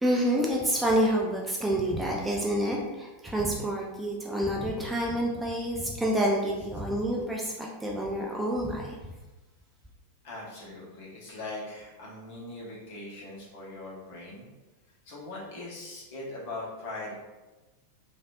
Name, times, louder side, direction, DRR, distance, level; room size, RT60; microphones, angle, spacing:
voice 1, 0.0-9.0, right 1 dB, 10° right, -2 dB, 0.4 m, -28 dB
voice 2, 10.2-14.5 15.0-17.1, left 2 dB, 50° left, -6 dB, 1.1 m, -40 dB
3.2 x 2.4 x 2.5 m, 1.1 s
figure-of-eight pair, 90°, 0 cm